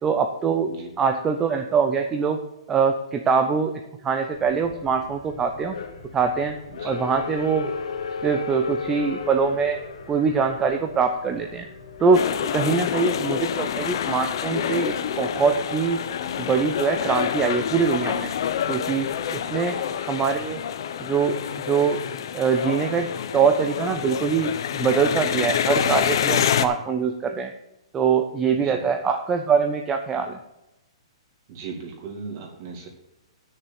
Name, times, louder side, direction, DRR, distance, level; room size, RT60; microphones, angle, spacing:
voice 1, 0.0-0.7 1.0-2.4 2.7-5.8 6.1-6.6 6.8-7.7 8.2-9.8 10.1-11.7 12.0-16.0 16.4-18.3 18.7-19.8 20.1-20.6 21.0-21.4 21.6-22.0 22.3-27.5 27.9-30.4, right 5 dB, 10° right, 5 dB, 0.5 m, -23 dB
sound 1, 4.3-19.4, left 5 dB, 75° left, 2.1 m, -38 dB
voice 2, 6.7-7.0 28.5-28.8 31.5-32.9, right 5 dB, 35° right, 2 dB, 2.4 m, -37 dB
sound 2, 12.1-26.7, left 9 dB, 50° left, 0.7 m, -27 dB
9.5 x 6.6 x 6.9 m, 0.91 s
hypercardioid pair, 170°, 3 cm